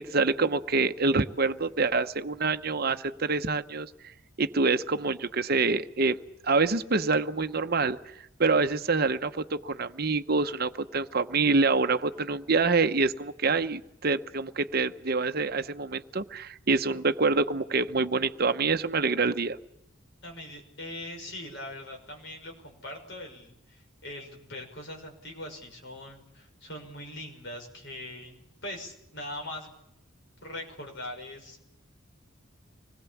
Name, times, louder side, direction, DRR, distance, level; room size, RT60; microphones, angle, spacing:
voice 1, 0.0-3.9 4.4-6.2 6.4-8.0 8.4-19.6, right 4 dB, 50° right, 9 dB, 0.9 m, -26 dB
voice 2, 20.2-29.8 30.4-31.7, left 1 dB, 60° left, 2 dB, 6.0 m, -41 dB
26.0 x 20.5 x 7.2 m, 0.83 s
head